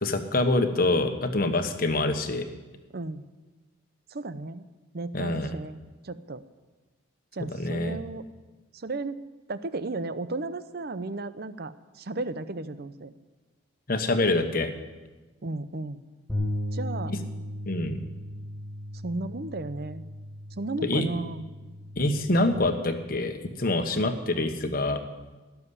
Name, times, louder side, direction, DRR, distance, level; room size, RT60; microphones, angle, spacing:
voice 1, 0.0-2.4 5.1-5.6 7.6-8.0 13.9-14.7 17.1-17.2 17.7-18.0 20.8-21.1 22.0-25.0, left 2 dB, 45° left, 7 dB, 1.2 m, -25 dB
voice 2, 2.9-3.2 4.1-4.7 4.9-6.4 7.3-8.3 8.7-9.2 9.5-13.1 15.4-16.0 16.7-17.1 19.0-20.0 20.6-21.5, right 2 dB, 50° right, 13 dB, 0.7 m, -34 dB
Bass guitar, 16.3-22.5, left 1 dB, 5° left, 3.0 m, -36 dB
17.5 x 7.1 x 9.8 m, 1.2 s
head